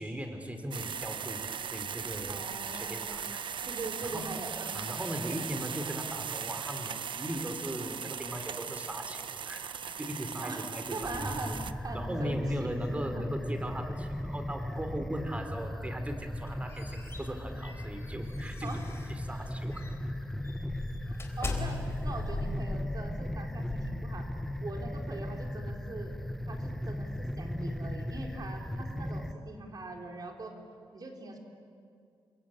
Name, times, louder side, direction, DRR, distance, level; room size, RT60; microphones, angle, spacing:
voice 1, 0.0-2.4 2.7-3.4 4.0-4.3 4.7-11.3 11.9-18.7 19.1-19.9, equal, 15° right, 6 dB, 3.4 m, -38 dB
sound 1, 0.7-11.7, right 7 dB, 65° right, 1.0 m, -38 dB
voice 2, 2.3-5.3 10.4-11.6 11.8-13.2 15.5-15.8 18.6-18.8 21.1-24.3 24.6-26.2 26.5-30.6 30.9-31.4, right 2 dB, 45° right, 2 dB, 3.9 m, -42 dB
sound 2, 11.0-29.3, left 1 dB, 5° left, 1.2 m, -37 dB
sound 3, 16.4-19.2 19.7-19.9 20.4-24.6, left 3 dB, 30° left, 3.9 m, -40 dB
29.0 x 22.5 x 8.8 m, 2.4 s
cardioid pair, 105°, 9 cm